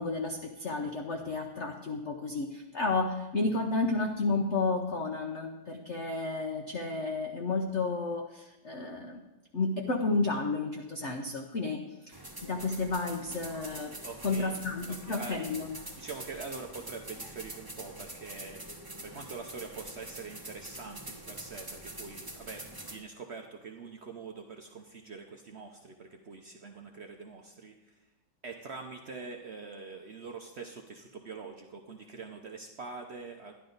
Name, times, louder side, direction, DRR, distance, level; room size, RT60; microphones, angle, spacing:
voice 1, 0.0-9.2 9.5-14.0 14.2-15.7, left 3 dB, 55° left, 2 dB, 0.8 m, -32 dB
sound 1, 12.1-23.0, right 1 dB, 15° right, 0.9 m, -45 dB
voice 2, 14.0-14.6 14.9-15.4 16.0-28.0 28.4-33.5, right 4 dB, 70° right, 4 dB, 0.6 m, -44 dB
11.5 x 11.5 x 3.9 m, 1.0 s
omnidirectional pair, 2.1 m